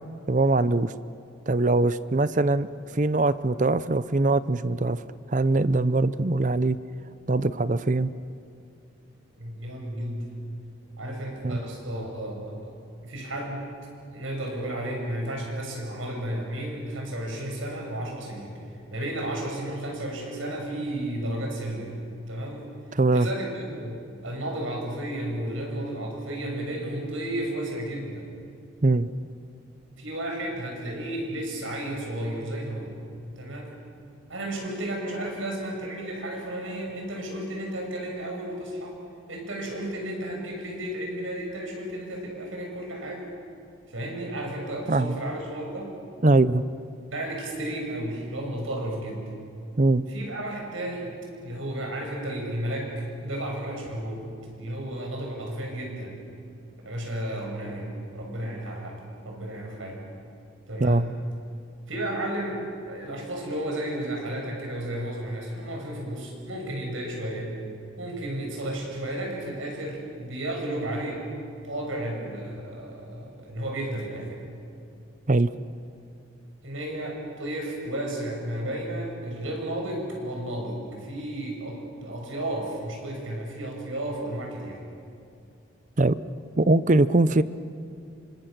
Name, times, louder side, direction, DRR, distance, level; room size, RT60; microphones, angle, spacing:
voice 1, 0.3-0.9 1.5-2.7 2.9-5.0 5.3-6.8 7.3-8.1 11.4-11.6 23.0-23.3 28.8-29.1 44.9-45.2 46.2-46.6 49.8-50.1 60.8-61.0 75.3-75.5 86.0-86.2 86.6-87.4, right 2 dB, 40° right, 15 dB, 0.6 m, -22 dB
voice 2, 9.4-10.4 11.0-12.7 13.0-13.7 14.1-18.5 18.9-22.7 23.1-28.4 30.0-33.0 33.4-33.8 34.3-38.9 39.3-43.3 43.9-45.9 47.1-49.3 50.1-51.1 51.4-54.2 54.5-56.2 56.9-60.0 60.7-61.1 61.9-67.6 68.0-71.2 71.6-74.6 76.6-84.8, right 1 dB, 85° right, 1 dB, 7.0 m, -33 dB
28.0 x 26.0 x 6.7 m, 2.4 s
head